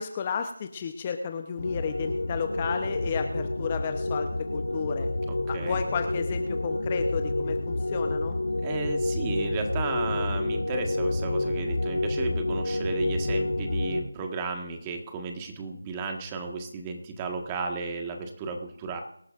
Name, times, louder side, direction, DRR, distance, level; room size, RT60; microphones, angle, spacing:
voice 1, 0.0-5.1 5.5-8.3, left 6 dB, 20° left, 6 dB, 0.9 m, -32 dB
sound 1, 1.6-14.0, left 2 dB, 85° left, 5.3 m, -29 dB
voice 2, 8.6-19.0, right 4 dB, 15° right, 3 dB, 1.7 m, -34 dB
24.5 x 12.5 x 2.6 m, 0.70 s
figure-of-eight pair, 165°, 0 cm